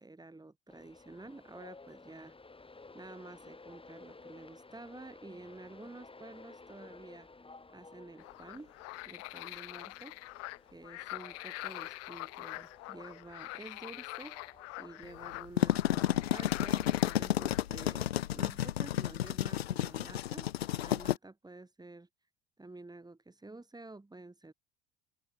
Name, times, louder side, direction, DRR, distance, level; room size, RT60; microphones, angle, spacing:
voice 1, 0.0-2.3 2.9-7.3 7.7-8.7 9.1-10.2 10.7-14.4 14.8-20.5 20.7-22.1 22.6-24.5, right 2 dB, 15° right, 7.7 m, -50 dB
Train, 0.7-17.3, left 3 dB, 20° left, 6.0 m, -55 dB
sound 1, 8.2-17.6, left 23 dB, 55° left, 0.7 m, -45 dB
sound 2, 15.3-21.2, left 12 dB, 85° left, 0.9 m, -31 dB
open air
hypercardioid pair, 65°, 30 cm